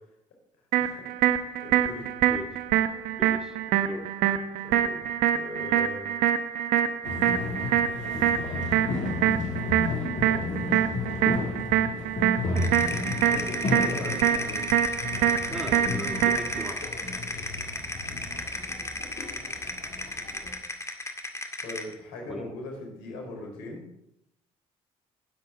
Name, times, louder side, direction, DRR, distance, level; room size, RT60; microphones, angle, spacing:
sound 1, 0.7-16.7, right 10 dB, 75° right, 0.9 m, -25 dB
voice 1, 0.8-2.1 4.6-5.0 5.3-6.0 7.9-8.2 12.6-14.7 21.6-23.8, left 1 dB, 80° left, 0 dB, 4.4 m, -41 dB
voice 2, 3.2-3.6 3.8-4.1 15.5-17.1 22.3-22.5, equal, 5° right, 4 dB, 1.7 m, -39 dB
sound 2, 7.0-20.5, left 3 dB, 55° left, 2.7 m, -33 dB
sound 3, 12.6-21.9, left 2 dB, 20° left, 2.0 m, -35 dB
20.0 x 7.7 x 3.8 m, 0.80 s
hypercardioid pair, 60°, 15 cm